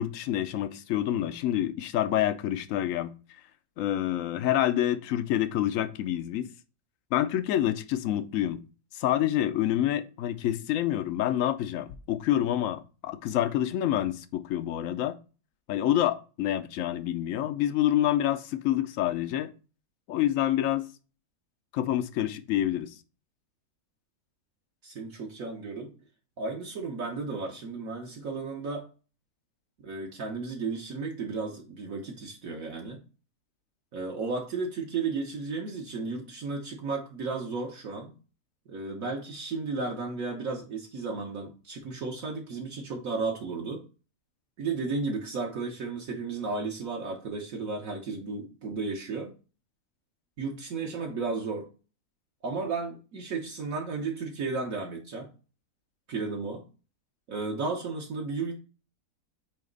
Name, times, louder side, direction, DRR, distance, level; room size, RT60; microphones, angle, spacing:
voice 1, 0.0-3.1 3.8-6.5 7.1-8.6 8.9-15.2 15.7-19.5 20.1-20.9 21.7-22.9, left 12 dB, 65° left, 0.9 m, -27 dB
voice 2, 24.8-25.9 26.4-28.9 29.8-33.0 33.9-38.1 38.7-43.8 44.6-49.3 50.4-51.7 52.4-55.3 56.1-56.6 57.3-58.6, right 4 dB, 60° right, 1.4 m, -34 dB
8.4 x 2.9 x 3.9 m
omnidirectional pair, 1.7 m